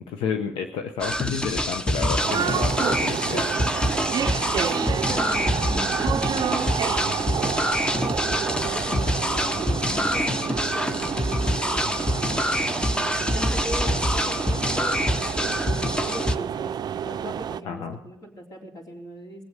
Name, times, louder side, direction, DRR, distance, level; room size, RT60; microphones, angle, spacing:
voice 1, 0.1-3.5 17.7-18.0, left 6 dB, 80° left, 5 dB, 0.9 m, -30 dB
sound 1, 1.0-16.4, equal, 10° left, 0.9 m, -25 dB
sound 2, 2.2-17.6, right 8 dB, 50° right, 0.4 m, -29 dB
voice 2, 4.5-12.4 13.3-19.4, equal, 45° left, 1 dB, 3.8 m, -39 dB
20.5 x 8.0 x 6.7 m, 0.87 s
supercardioid pair, 75°, 9 cm